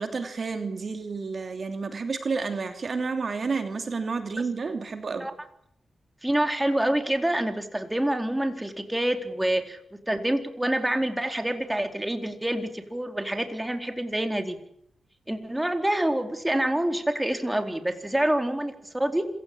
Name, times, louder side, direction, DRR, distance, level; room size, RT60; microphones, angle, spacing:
voice 1, 0.0-5.3, right 4 dB, 55° right, 7 dB, 2.9 m, -30 dB
voice 2, 6.2-9.8 10.1-14.6 15.3-19.3, right 1 dB, 10° right, 6 dB, 4.1 m, -27 dB
27.0 x 16.5 x 8.6 m, 0.72 s
cardioid pair, 55°, 0 cm